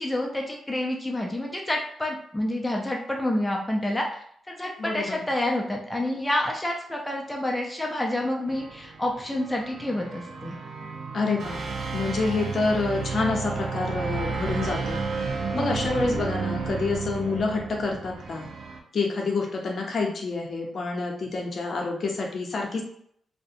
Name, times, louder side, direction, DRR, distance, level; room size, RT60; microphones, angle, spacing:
voice 1, 0.0-10.5 15.5-15.7, left 1 dB, 10° left, 0 dB, 0.4 m, -28 dB
voice 2, 4.8-5.2 11.1-11.6 11.9-15.0 15.2-18.5 18.9-22.8, left 3 dB, 55° left, 0 dB, 0.6 m, -28 dB
sound 1, 8.5-18.8, right 4 dB, 75° right, 0.4 m, -32 dB
2.4 x 2.1 x 2.6 m, 0.65 s
cardioid pair, 85°, 0 cm